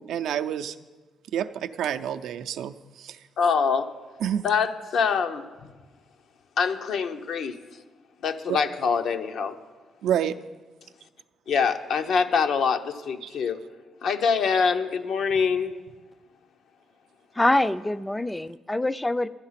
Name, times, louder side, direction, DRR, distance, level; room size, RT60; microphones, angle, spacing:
voice 1, 0.1-0.8 1.3-3.2 4.2-4.4 8.5-8.6 10.0-10.4 13.2-13.3, right 9 dB, 80° right, 9 dB, 0.5 m, -28 dB
voice 2, 3.4-3.9 4.4-5.7 6.6-7.6 8.2-9.6 11.5-13.6 14.0-15.7, left 6 dB, 70° left, 7 dB, 0.8 m, -24 dB
voice 3, 17.4-19.3, left 1 dB, 10° left, 15 dB, 0.4 m, -24 dB
12.5 x 9.5 x 5.8 m, 1.3 s
cardioid pair, 90°, 0 cm